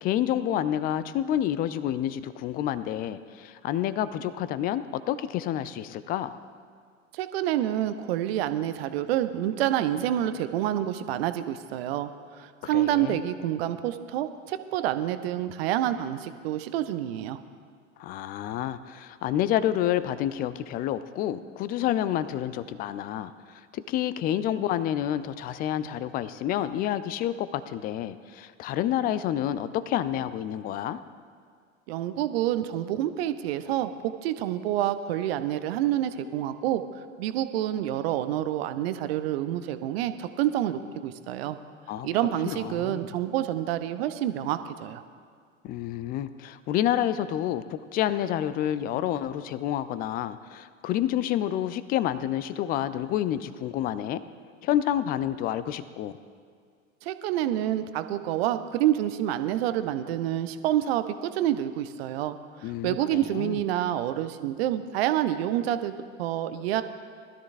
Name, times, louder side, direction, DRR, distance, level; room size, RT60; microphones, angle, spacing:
voice 1, 0.0-6.4 12.6-13.2 18.0-23.3 23.7-31.0 41.9-42.1 42.4-43.0 45.6-54.2 54.6-56.1 62.6-63.6, left 11 dB, 25° left, 14 dB, 0.4 m, -29 dB
voice 2, 7.1-17.4 31.9-36.8 37.2-41.6 42.0-45.0 57.0-66.8, right 12 dB, 50° right, 11 dB, 0.8 m, -28 dB
20.0 x 13.0 x 2.6 m, 2.1 s
figure-of-eight pair, 85°, 39 cm